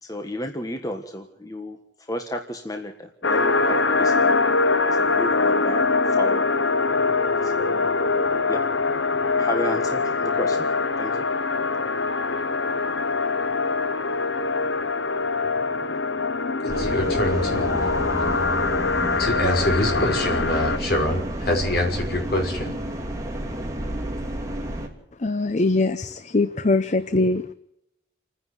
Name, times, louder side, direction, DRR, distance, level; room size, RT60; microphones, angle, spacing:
voice 1, 0.0-4.5 4.9-6.4 7.4-8.0 8.5-8.6 9.4-10.7 11.0-11.3, equal, 20° left, 1.5 m, -33 dB
sound 1, 3.2-20.8, left 3 dB, 90° left, 1.0 m, -23 dB
voice 2, 16.6-17.8 19.2-22.7, left 1 dB, 55° left, 5.8 m, -25 dB
sound 2, 16.7-24.9, right 1 dB, 20° right, 2.9 m, -30 dB
voice 3, 25.2-27.5, left 2 dB, 40° left, 0.7 m, -22 dB
29.0 x 10.0 x 9.7 m
head